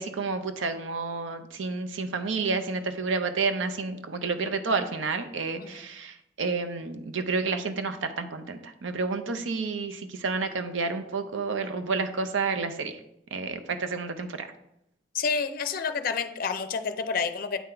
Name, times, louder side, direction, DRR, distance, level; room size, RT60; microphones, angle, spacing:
voice 1, 0.0-13.0 13.3-14.5, right 4 dB, 80° right, 8 dB, 0.6 m, -30 dB
voice 2, 15.1-17.6, left 5 dB, 50° left, 10 dB, 0.5 m, -29 dB
8.2 x 3.8 x 4.4 m, 0.80 s
head